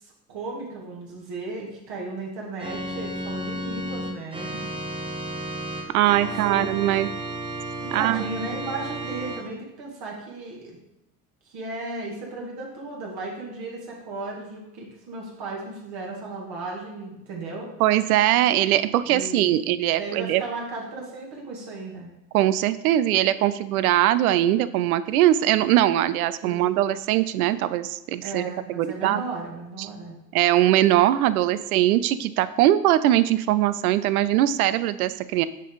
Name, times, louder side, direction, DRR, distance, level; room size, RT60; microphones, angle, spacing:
voice 1, 0.0-4.7 5.7-6.6 7.0-7.1 7.8-10.8 11.5-17.7 19.1-19.5 20.0-22.1 26.4-26.6 28.2-30.2, right 3 dB, 60° right, -2 dB, 2.2 m, -35 dB
Organ, 2.6-9.4, right 1 dB, 10° right, 1.0 m, -33 dB
voice 2, 5.9-7.1 7.9-8.2 17.8-20.4 22.3-29.2 29.8-29.9 30.3-35.5, right 13 dB, 80° right, 15 dB, 0.5 m, -21 dB
7.4 x 5.4 x 3.9 m, 0.85 s
hypercardioid pair, 65°, 43 cm